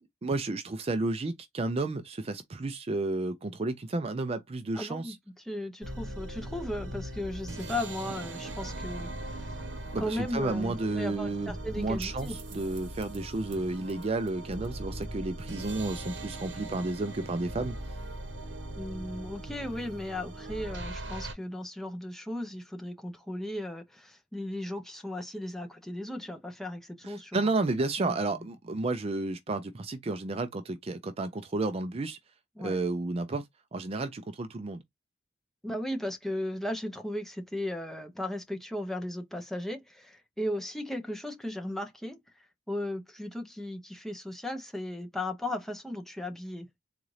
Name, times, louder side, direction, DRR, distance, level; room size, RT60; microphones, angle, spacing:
voice 1, 0.2-5.2 9.9-17.7 27.0-32.2 32.6-33.5 33.7-34.8, right 2 dB, 30° right, 0.4 m, -32 dB
voice 2, 4.7-9.6 10.0-12.4 18.8-27.5 28.0-28.5 32.6-32.8 35.6-46.7, left 1 dB, ahead, 0.7 m, -36 dB
sound 1, 5.8-21.3, right 1 dB, 80° right, 1.1 m, -40 dB
4.0 x 2.4 x 3.1 m
head